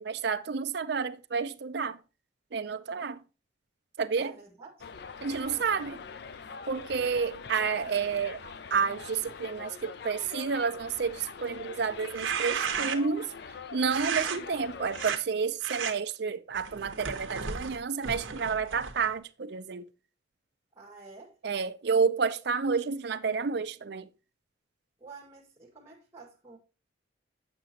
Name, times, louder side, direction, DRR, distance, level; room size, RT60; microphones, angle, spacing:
voice 1, 0.0-2.0 2.5-3.2 4.0-4.3 5.2-6.0 6.7-13.3 13.7-19.8 21.4-24.1, right 5 dB, 55° right, 0.5 m, -30 dB
voice 2, 4.2-4.9 5.2-6.0 20.7-21.4 25.0-26.6, right 3 dB, 15° right, 1.7 m, -50 dB
Subway metro underground, 4.8-15.1, left 5 dB, 55° left, 0.4 m, -44 dB
Bedroom Ripping Paper Far Persp, 12.0-13.2 13.9-14.4 14.9-15.2 15.6-15.9 16.5-19.1, right 7 dB, 85° right, 0.9 m, -34 dB
7.9 x 6.0 x 2.8 m
head